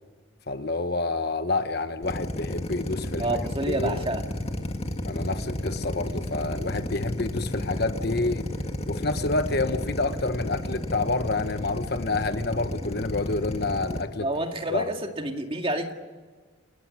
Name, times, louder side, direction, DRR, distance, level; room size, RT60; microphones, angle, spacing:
voice 1, 0.5-4.0 5.0-8.5 8.9-14.3 14.7-15.0, left 3 dB, 50° left, 9 dB, 1.1 m, -28 dB
Drill, 2.0-14.0, left 1 dB, 30° left, 1.9 m, -32 dB
voice 2, 3.2-4.2 14.2-15.9, right 1 dB, 25° right, 4 dB, 2.1 m, -29 dB
29.0 x 15.0 x 9.6 m, 1.4 s
head